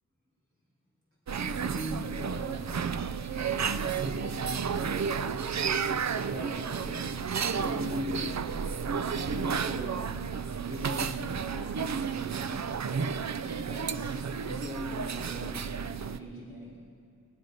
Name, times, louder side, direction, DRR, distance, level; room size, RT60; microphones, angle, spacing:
sound 1, 1.3-16.2, right 6 dB, 50° right, 0.5 m, -32 dB
voice 1, 1.4-2.6 3.3-5.6 6.3-7.1 7.5-8.3 8.9-10.2 10.6-12.8 13.6-16.8, equal, 35° right, -7 dB, 3.5 m, -41 dB
19.0 x 11.5 x 5.3 m, 2.4 s
wide cardioid pair, 90°, 35 cm